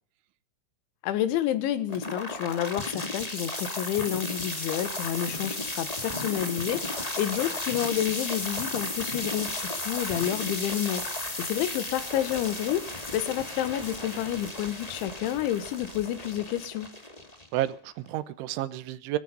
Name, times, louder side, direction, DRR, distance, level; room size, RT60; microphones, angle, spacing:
voice 1, 1.0-6.8 7.2-11.0 11.4-16.9, left 11 dB, 85° left, 3.6 m, -29 dB
sound 1, 1.9-17.9, left 2 dB, 25° left, 0.7 m, -34 dB
voice 2, 7.2-7.6 17.5-19.2, right 14 dB, 85° right, 3.5 m, -31 dB
20.5 x 12.5 x 5.3 m
omnidirectional pair, 5.3 m